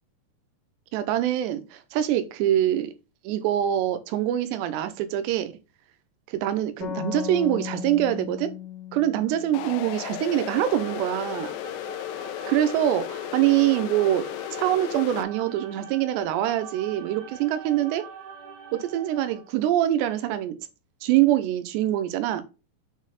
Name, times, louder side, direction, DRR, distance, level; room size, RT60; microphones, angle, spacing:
voice 1, 0.9-2.9 3.2-5.5 6.3-8.5 8.9-11.6 12.5-14.3 14.6-18.0 18.7-20.6 21.0-22.4, right 12 dB, 85° right, 2.8 m, -24 dB
sound 1, 6.8-10.3, left 11 dB, 60° left, 2.7 m, -36 dB
sound 2, 9.5-15.2, left 15 dB, 85° left, 2.5 m, -35 dB
sound 3, 10.2-19.6, right 6 dB, 65° right, 3.4 m, -43 dB
7.0 x 4.2 x 4.0 m
omnidirectional pair, 5.2 m